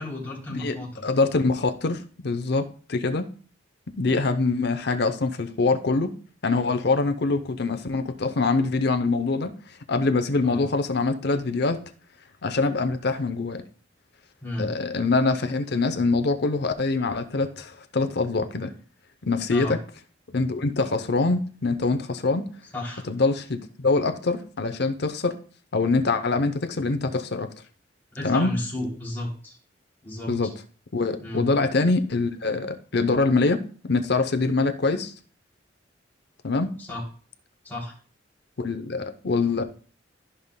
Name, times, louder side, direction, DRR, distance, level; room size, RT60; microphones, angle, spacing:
voice 1, 0.0-1.0 10.4-10.6 14.4-14.7 19.5-19.8 22.7-23.0 28.1-29.6 30.0-30.3 31.2-31.4 36.8-37.0 37.6-37.9, left 1 dB, 10° left, 3.1 m, -33 dB
voice 2, 1.0-3.3 4.0-6.1 6.4-9.5 9.9-11.8 12.4-13.6 14.6-18.7 19.2-19.8 20.3-22.5 23.1-25.3 25.7-27.5 28.2-28.5 30.3-30.5 30.9-33.6 33.9-35.1 36.4-36.7 38.6-39.6, left 3 dB, 60° left, 0.7 m, -24 dB
14.0 x 5.6 x 2.2 m
head